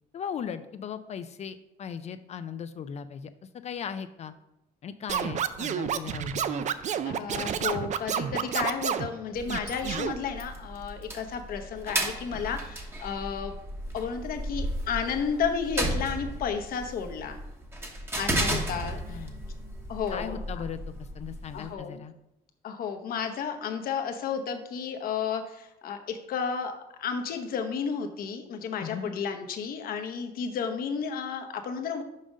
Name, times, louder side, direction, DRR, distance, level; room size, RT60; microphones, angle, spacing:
voice 1, 0.1-3.3 3.6-4.3 4.8-6.6 19.1-19.4 20.1-22.1 28.8-29.1, left 7 dB, 40° left, 10 dB, 0.4 m, -37 dB
Scratching (performance technique), 5.1-9.1 9.5-10.1, right 8 dB, 45° right, 0.4 m, -29 dB
voice 2, 7.0-13.5 13.9-17.4 18.2-19.3 19.9-20.4 21.5-21.9 22.6-26.7 27.0-32.0, left 6 dB, 60° left, 6 dB, 0.9 m, -32 dB
sound 1, 9.3-21.7, right 1 dB, 15° right, 1.1 m, -34 dB
5.6 x 5.1 x 5.1 m, 0.87 s
cardioid pair, 110°, 17 cm